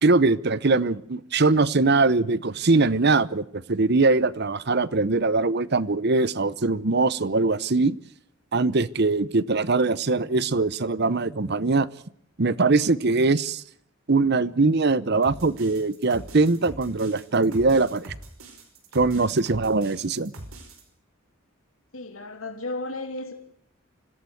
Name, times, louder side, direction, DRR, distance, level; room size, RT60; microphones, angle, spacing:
voice 1, 0.0-8.0 8.5-11.9 12.4-13.6 14.1-18.1 18.9-20.3, right 3 dB, 50° right, 0.9 m, -22 dB
sound 1, 15.2-20.8, right 1 dB, 85° right, 5.5 m, -42 dB
voice 2, 21.9-23.3, left 2 dB, 80° left, 2.9 m, -34 dB
26.0 x 16.0 x 7.9 m
head